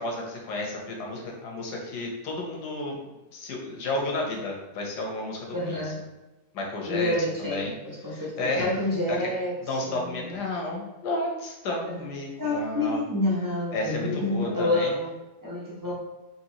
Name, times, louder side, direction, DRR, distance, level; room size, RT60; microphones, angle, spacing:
voice 1, 0.0-3.0 3.3-5.9 6.5-7.7 8.1-8.7 9.1-9.3 9.6-13.0 13.7-14.9, left 2 dB, 85° left, 0 dB, 1.5 m, -32 dB
voice 2, 5.5-6.1 6.9-9.5 9.8-10.2 11.8-12.1 12.4-15.1 15.4-15.9, left 1 dB, 15° right, -7 dB, 0.9 m, -28 dB
4.2 x 3.1 x 2.9 m, 1.0 s
omnidirectional pair, 1.7 m